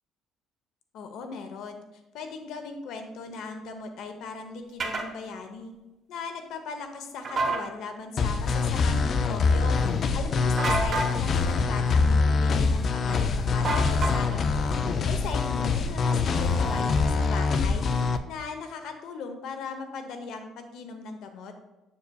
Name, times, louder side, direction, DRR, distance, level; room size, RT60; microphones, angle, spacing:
voice 1, 0.9-1.8 2.1-5.7 6.1-9.8 10.1-17.9 18.3-21.5, left 4 dB, 65° left, 6 dB, 0.8 m, -38 dB
sound 1, 4.8-5.1 7.2-7.6 10.6-11.1 13.6-14.4, right 2 dB, 35° right, 1.0 m, -28 dB
sound 2, 8.2-18.2, left 4 dB, 40° left, 0.3 m, -24 dB
6.9 x 6.6 x 2.3 m, 1.0 s
cardioid pair, 145°, 0 cm